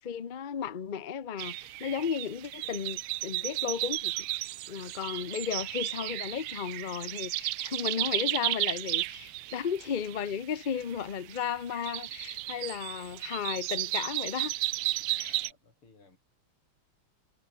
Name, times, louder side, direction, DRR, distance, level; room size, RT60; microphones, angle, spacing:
voice 1, 0.0-4.1 4.7-14.5 15.2-15.4, left 7 dB, 60° left, 0.5 m, -34 dB
sound 1, 1.4-15.5, right 16 dB, 80° right, 1.5 m, -34 dB
voice 2, 15.1-16.2, left 3 dB, 75° left, 6.2 m, -60 dB
omnidirectional pair, 2.4 m